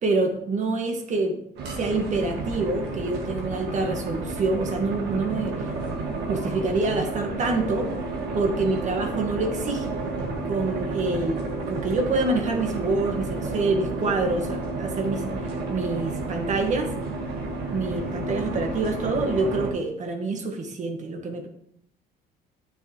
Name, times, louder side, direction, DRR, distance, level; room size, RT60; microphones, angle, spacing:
voice 1, 0.0-1.4 1.7-5.5 6.1-7.9 8.3-9.9 10.4-15.2 15.7-16.9 17.7-21.5, right 3 dB, 45° right, 3 dB, 1.7 m, -26 dB
sound 1, 1.6-19.7, right 3 dB, 85° right, 1.8 m, -31 dB
9.5 x 6.7 x 3.1 m, 0.70 s
cardioid pair, 110°, 17 cm